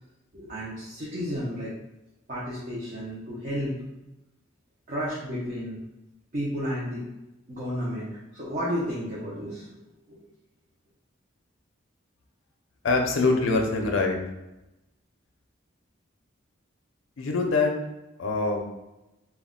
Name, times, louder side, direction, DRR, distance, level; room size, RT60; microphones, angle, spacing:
voice 1, 0.3-1.7 2.3-3.8 4.9-5.8 6.3-7.0 7.5-9.8 10.1-10.2, equal, 40° right, -7 dB, 0.5 m, -32 dB
voice 2, 12.8-14.2 17.2-17.7 18.2-18.7, left 3 dB, 80° left, 2 dB, 0.5 m, -24 dB
2.2 x 2.1 x 3.6 m, 0.96 s
head